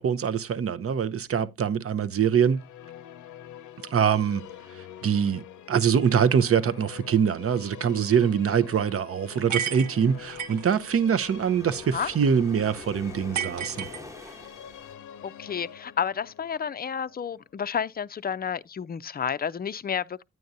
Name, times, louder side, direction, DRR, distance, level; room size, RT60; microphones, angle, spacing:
voice 1, 0.0-2.6 3.8-4.4 4.7-5.4 5.7-13.9, right 7 dB, 50° right, 0.7 m, -24 dB
sound 1, 2.2-18.3, left 10 dB, 80° left, 0.6 m, -46 dB
sound 2, 9.5-10.7 13.3-14.5, right 8 dB, 85° right, 0.9 m, -32 dB
sound 3, 9.9-14.9, left 1 dB, 10° right, 1.1 m, -47 dB
voice 2, 15.2-20.2, left 7 dB, 30° left, 0.5 m, -31 dB
9.3 x 9.2 x 2.6 m
cardioid pair, 55°, 30 cm